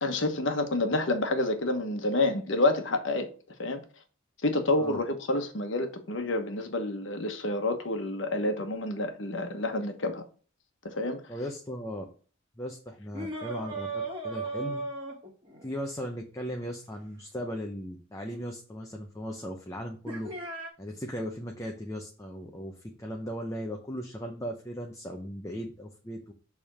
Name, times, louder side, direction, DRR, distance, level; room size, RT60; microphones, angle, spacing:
voice 1, 0.0-3.3 3.6-3.8 4.4-10.2 10.8-11.2, left 2 dB, 65° left, 1.2 m, -28 dB
voice 2, 11.3-12.1 12.6-14.8 15.6-20.3 20.8-26.2, equal, 15° left, 0.7 m, -37 dB
sound 1, 13.1-15.7 18.3-18.4 20.1-20.7, right 3 dB, 30° right, 1.9 m, -36 dB
6.8 x 3.6 x 6.2 m
head